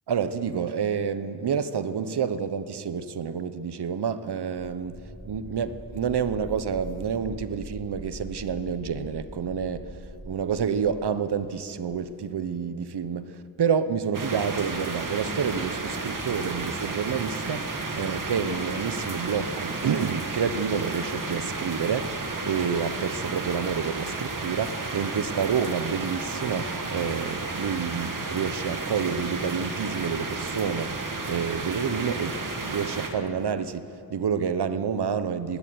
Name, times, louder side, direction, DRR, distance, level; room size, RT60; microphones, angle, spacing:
voice 1, 0.1-10.0 10.2-35.6, right 6 dB, 80° right, 1.1 m, -29 dB
sound 1, 4.8-10.7, equal, 10° right, 3.8 m, -42 dB
sound 2, 14.1-33.1, right 3 dB, 55° right, 2.5 m, -32 dB
20.0 x 17.0 x 9.5 m
wide cardioid pair, 80°, 39 cm